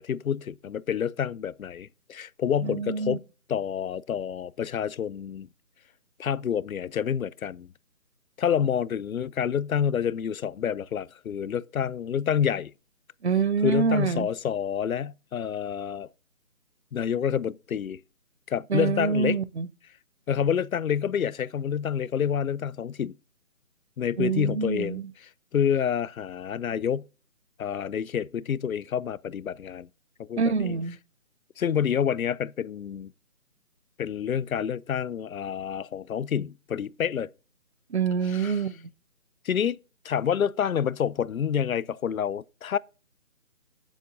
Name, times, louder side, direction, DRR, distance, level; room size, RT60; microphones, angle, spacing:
voice 1, 0.0-3.2 3.5-5.5 6.2-7.7 8.4-12.7 13.6-16.1 16.9-18.0 18.5-19.4 20.3-23.1 24.0-27.1 27.6-29.9 30.2-30.7 31.6-33.1 34.0-37.3 38.3-38.6 39.4-39.8 40.0-42.8, left 8 dB, 85° left, 0.6 m, -28 dB
voice 2, 2.6-3.2 13.2-14.3 18.7-19.7 24.2-25.1 30.4-31.0 37.9-38.9, right 5 dB, 55° right, 0.7 m, -26 dB
16.0 x 7.3 x 2.6 m
figure-of-eight pair, 170°, 41 cm